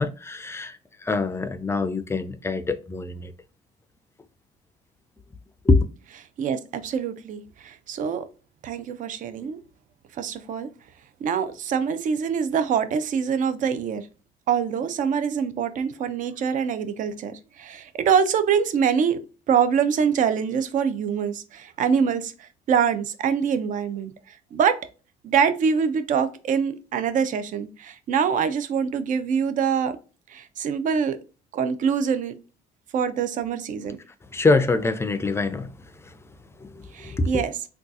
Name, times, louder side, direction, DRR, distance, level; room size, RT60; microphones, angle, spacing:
voice 1, 0.0-3.3 5.7-5.9 34.3-35.7 36.6-37.4, left 3 dB, 15° left, 0.4 m, -24 dB
voice 2, 6.4-8.2 8.6-9.6 10.2-10.7 11.2-14.1 14.5-19.2 19.5-24.1 24.5-24.8 25.2-30.0 30.3-31.2 31.5-32.3 32.9-34.0 36.9-37.5, right 7 dB, 50° right, 0.5 m, -24 dB
3.6 x 2.3 x 2.6 m
cardioid pair, 110°, 17 cm